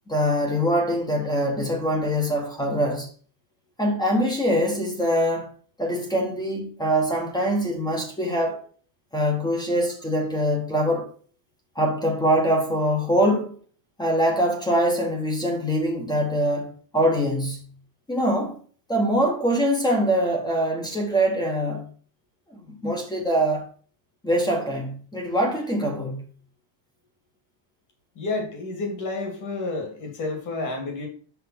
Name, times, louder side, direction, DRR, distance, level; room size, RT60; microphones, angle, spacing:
voice 1, 0.1-3.1 3.8-5.5 5.8-8.6 9.1-11.1 11.7-13.6 14.0-17.7 18.1-18.6 18.9-21.8 22.5-23.7 24.2-26.2, equal, 10° left, 1.1 m, -23 dB
voice 2, 28.2-31.1, left 3 dB, 35° left, 2.3 m, -30 dB
5.8 x 4.9 x 6.0 m
cardioid pair, 175°, 50 cm